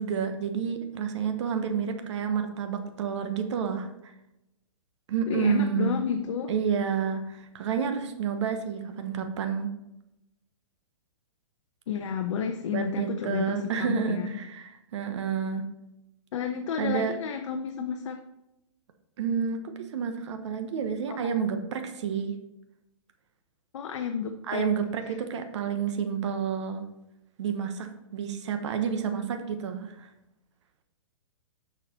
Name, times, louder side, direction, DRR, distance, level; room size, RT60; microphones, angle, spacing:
voice 1, 0.0-4.1 5.1-6.0 6.5-9.7 12.7-15.6 16.8-17.1 19.2-22.3 24.5-26.8 27.4-30.1, right 7 dB, 60° right, 7 dB, 1.1 m, -29 dB
voice 2, 5.3-6.5 11.9-14.4 16.3-18.2 21.1-21.2 23.7-24.6 25.0-25.2, left 7 dB, 60° left, 5 dB, 0.8 m, -31 dB
7.0 x 5.8 x 4.3 m, 0.90 s
hypercardioid pair, 150°, 17 cm